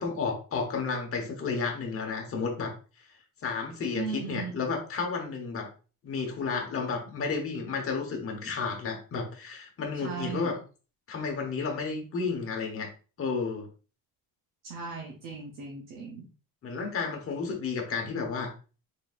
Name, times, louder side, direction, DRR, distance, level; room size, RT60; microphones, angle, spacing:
voice 1, 0.0-2.7 3.4-5.7 6.0-10.6 11.1-12.9 13.2-13.7 16.6-18.5, left 4 dB, 35° left, 2 dB, 1.1 m, -32 dB
voice 2, 3.9-4.5 10.0-10.5 14.6-16.2, right 5 dB, 60° right, -1 dB, 1.0 m, -37 dB
4.0 x 3.9 x 2.5 m, 0.36 s
cardioid pair, 155°, 38 cm